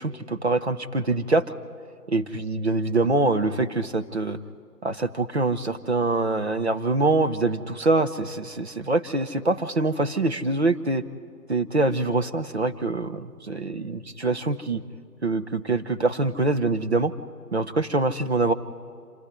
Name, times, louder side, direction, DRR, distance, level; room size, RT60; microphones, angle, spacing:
voice 1, 0.0-1.4 2.1-4.4 4.8-11.0 11.5-14.8 15.2-17.1 17.5-18.5, right 2 dB, 40° right, 8 dB, 0.9 m, -24 dB
26.5 x 14.5 x 9.7 m, 2.3 s
figure-of-eight pair, 165°, 49 cm